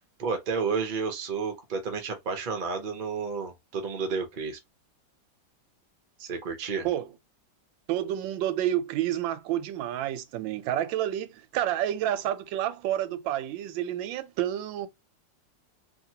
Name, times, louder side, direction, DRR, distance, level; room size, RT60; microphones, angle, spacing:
voice 1, 0.2-4.6 6.2-6.9, right 5 dB, 50° right, 0.5 m, -31 dB
voice 2, 7.9-14.9, right 12 dB, 90° right, 1.3 m, -29 dB
2.8 x 2.8 x 2.8 m
omnidirectional pair, 2.0 m